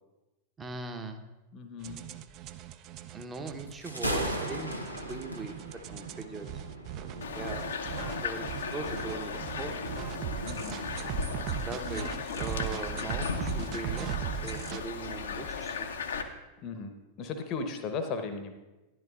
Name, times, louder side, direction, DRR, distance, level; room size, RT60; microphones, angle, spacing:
voice 1, 0.6-1.2 3.1-4.8 5.1-5.5 5.9-6.5 7.3-7.6 8.0-9.8 11.6-14.1 14.4-15.9, right 3 dB, 15° right, 6 dB, 0.7 m, -40 dB
voice 2, 1.5-2.1 10.5-10.8 16.6-18.5, left 4 dB, 35° left, 6 dB, 0.8 m, -36 dB
sound 1, 1.8-14.8, right 10 dB, 40° right, 0.4 m, -39 dB
Thunder, 3.7-10.9, right 1 dB, 90° right, 0.8 m, -38 dB
sound 2, 7.2-16.2, left 5 dB, 65° left, 0.6 m, -36 dB
11.0 x 10.5 x 2.3 m, 1.1 s
figure-of-eight pair, 90°, 0 cm